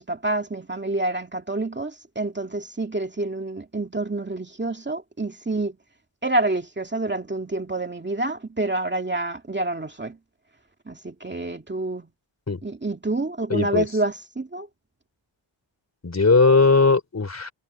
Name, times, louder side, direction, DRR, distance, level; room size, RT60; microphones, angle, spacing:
voice 1, 0.0-5.8 6.2-10.2 10.9-12.1 12.6-14.7, right 2 dB, 20° right, 2.3 m, -28 dB
voice 2, 13.5-13.9 16.0-17.5, left 4 dB, 30° left, 3.3 m, -18 dB
wide cardioid pair, 105°, 49 cm